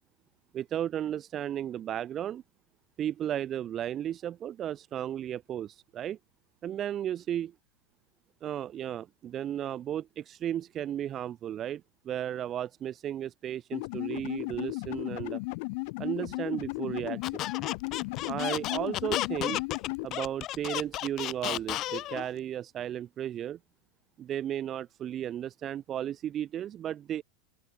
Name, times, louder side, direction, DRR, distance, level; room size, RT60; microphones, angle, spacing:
voice 1, 0.5-2.4 3.0-6.2 6.6-7.5 8.4-15.4 16.0-17.4 18.3-19.6 20.0-23.6 24.2-27.2, right 10 dB, 35° right, 2.4 m, -34 dB
sound 1, 13.7-20.1, left 29 dB, 60° left, 1.8 m, -35 dB
Squeak, 17.2-22.3, left 15 dB, 45° left, 1.9 m, -33 dB
open air
hypercardioid pair, 105°, 0 cm